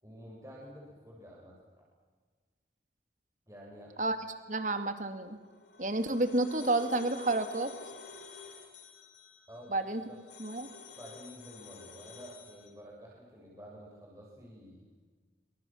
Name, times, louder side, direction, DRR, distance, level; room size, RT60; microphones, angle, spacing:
voice 1, 0.0-1.5 3.5-3.9 9.5-9.8 10.1-10.2 11.0-14.9, equal, 20° right, -4 dB, 7.1 m, -50 dB
voice 2, 4.5-5.4 5.8-7.7 9.7-10.0 10.4-10.7, right 2 dB, 45° right, 9 dB, 2.4 m, -30 dB
sound 1, 5.3-12.7, left 5 dB, 80° left, 4.5 m, -51 dB
27.0 x 26.5 x 7.4 m, 1.4 s
head